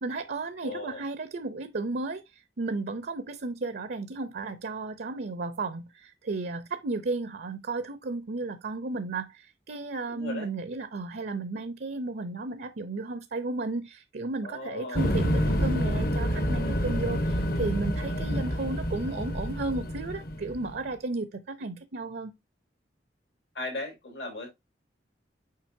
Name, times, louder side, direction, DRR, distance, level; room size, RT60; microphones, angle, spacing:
voice 1, 0.0-22.3, right 3 dB, 65° right, 0.6 m, -34 dB
voice 2, 0.6-1.0 10.1-10.5 14.4-15.2 23.5-24.5, left 2 dB, 80° left, 3.6 m, -37 dB
sound 1, 15.0-20.8, equal, 60° left, 1.2 m, -28 dB
7.5 x 5.0 x 2.7 m
head